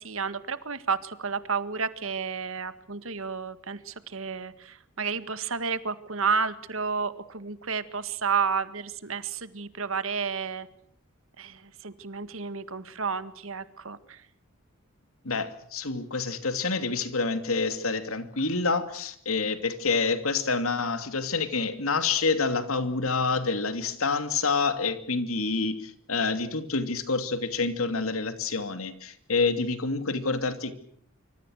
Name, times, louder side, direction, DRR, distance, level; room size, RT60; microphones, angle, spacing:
voice 1, 0.0-10.7 11.4-14.3, right 5 dB, 70° right, 13 dB, 1.8 m, -31 dB
voice 2, 15.2-30.7, left 4 dB, 80° left, 10 dB, 2.7 m, -27 dB
26.0 x 25.5 x 6.5 m, 0.64 s
head